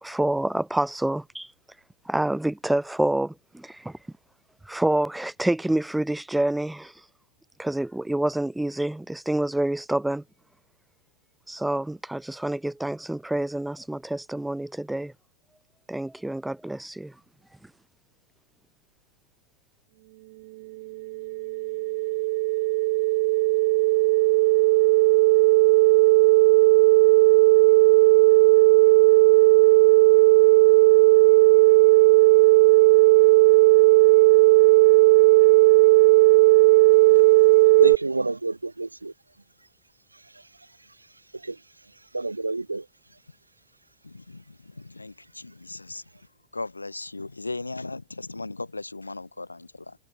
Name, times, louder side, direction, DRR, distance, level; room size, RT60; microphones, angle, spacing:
voice 1, 0.0-1.5 2.0-4.0 4.7-6.9 7.6-10.2 11.5-15.1 15.9-17.1, right 1 dB, 5° right, 2.6 m, -27 dB
sound 1, 20.9-37.9, right 22 dB, 50° right, 2.1 m, -16 dB
voice 2, 37.8-39.1 41.4-41.5 42.1-42.8, right 3 dB, 80° right, 1.5 m, -28 dB
voice 3, 44.0-46.1 46.5-50.0, left 3 dB, 80° left, 7.8 m, -37 dB
figure-of-eight pair, 90°, 0 cm